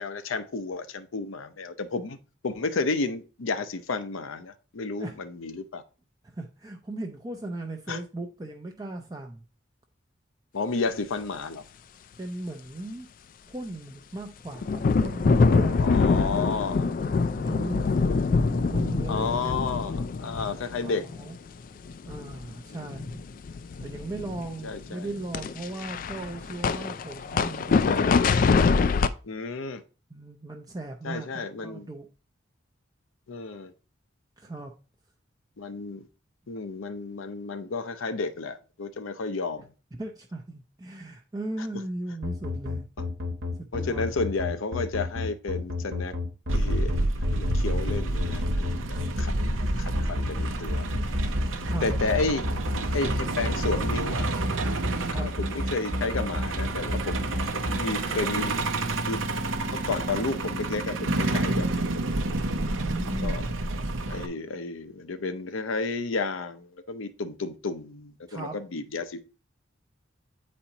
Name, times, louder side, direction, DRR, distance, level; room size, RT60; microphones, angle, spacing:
voice 1, 0.0-2.2 2.4-5.8 7.9-8.0 10.5-11.6 15.8-16.9 19.1-21.1 22.7-22.9 24.6-25.1 29.2-29.8 31.0-31.9 33.3-33.7 35.6-36.0 36.5-39.7 41.6-41.7 43.0-43.1 43.7-46.2 46.5-47.0 47.3-49.3 49.8-51.0 51.8-52.5 52.9-54.3 55.1-58.5 59.0-59.2 59.7-61.9 63.2-63.4 64.1-69.3, left 3 dB, 85° left, 0.6 m, -32 dB
voice 2, 6.2-9.4 12.2-13.1 13.5-17.0 17.4-19.5 20.2-20.5 20.8-21.4 22.1-23.2 23.8-27.9 30.1-32.1 34.4-34.7 40.0-42.8 43.6-44.2 51.7-51.9 55.1-55.3 62.5-63.4 68.3-68.6, right 2 dB, 20° right, 0.5 m, -38 dB
sound 1, 14.6-21.5 21.8-22.5 22.8-29.1, left 4 dB, 45° left, 0.3 m, -25 dB
sound 2, 42.2-57.8, left 2 dB, 65° right, 1.1 m, -30 dB
Truck, 46.5-64.3, right 2 dB, 85° right, 0.7 m, -29 dB
8.8 x 4.2 x 2.8 m
head